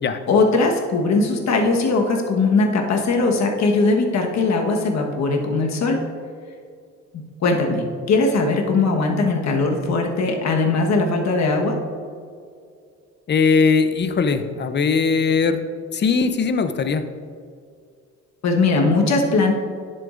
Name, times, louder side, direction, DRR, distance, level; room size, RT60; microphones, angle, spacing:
voice 1, 0.3-6.0 7.4-11.8 18.4-19.5, left 3 dB, 60° left, 2 dB, 1.3 m, -20 dB
voice 2, 13.3-15.6 15.9-17.0, left 5 dB, 35° left, 10 dB, 0.6 m, -19 dB
10.0 x 6.9 x 2.5 m, 2.2 s
cardioid pair, 90°, 30 cm